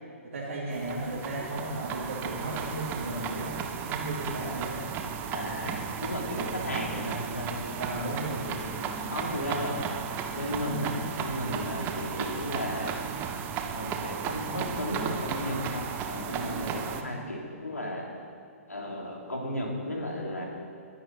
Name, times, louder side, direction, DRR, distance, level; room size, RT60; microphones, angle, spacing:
voice 1, 0.3-3.5 3.8-4.8 7.8-8.5 9.0-9.2, right 2 dB, 65° right, -8 dB, 3.6 m, -35 dB
sound 1, 0.7-17.0, right 7 dB, 25° right, 0.9 m, -35 dB
voice 2, 5.3-8.0 8.3-8.7 9.1-9.8 10.3-13.0 13.7-18.0 18.7-20.5, equal, 80° left, -1 dB, 3.2 m, -34 dB
21.5 x 10.5 x 4.1 m, 2.2 s
figure-of-eight pair, 120°, 8 cm